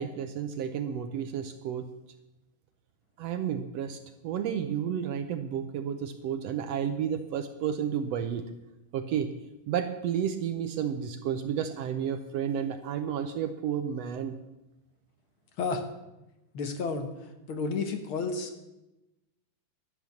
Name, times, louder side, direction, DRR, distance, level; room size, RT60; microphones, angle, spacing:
voice 1, 0.0-1.9 3.2-8.4 8.9-9.3 9.7-14.4, right 8 dB, 75° right, 9 dB, 1.5 m, -31 dB
voice 2, 16.5-18.7, left 4 dB, 60° left, 7 dB, 1.5 m, -32 dB
12.5 x 10.5 x 7.1 m, 0.97 s
omnidirectional pair, 3.6 m